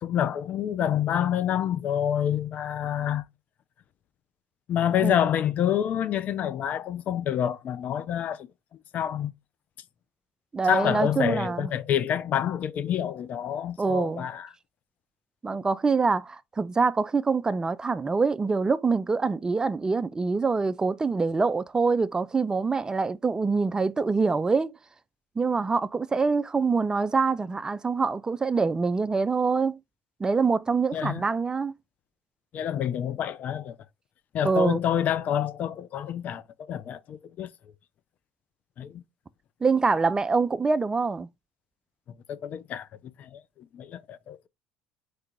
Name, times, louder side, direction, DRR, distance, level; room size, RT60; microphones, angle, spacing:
voice 1, 0.0-3.2 4.7-8.5 8.9-9.3 10.7-14.5 30.9-31.2 32.5-33.8 34.3-37.5 38.8-39.0 42.3-42.9 43.2-44.5, left 10 dB, 50° left, 0.5 m, -27 dB
voice 2, 10.5-11.7 13.8-14.3 15.4-24.7 25.4-29.8 30.2-31.7 34.4-34.8 39.6-41.3, right 4 dB, 20° right, 0.4 m, -25 dB
4.6 x 2.4 x 4.4 m
hypercardioid pair, 70°, 4 cm